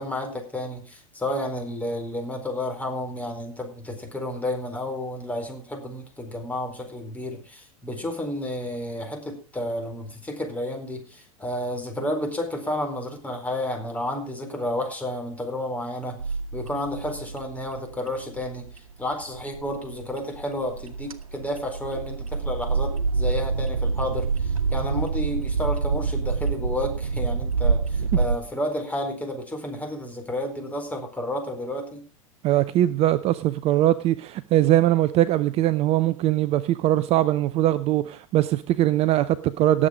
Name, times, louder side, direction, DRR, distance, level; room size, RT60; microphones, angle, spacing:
voice 1, 0.0-32.0, left 1 dB, 10° left, 4.4 m, -31 dB
sound 1, 16.2-28.4, right 4 dB, 80° right, 1.3 m, -27 dB
voice 2, 32.4-39.9, right 13 dB, 35° right, 0.6 m, -21 dB
18.5 x 7.7 x 5.0 m
figure-of-eight pair, 90°, 18 cm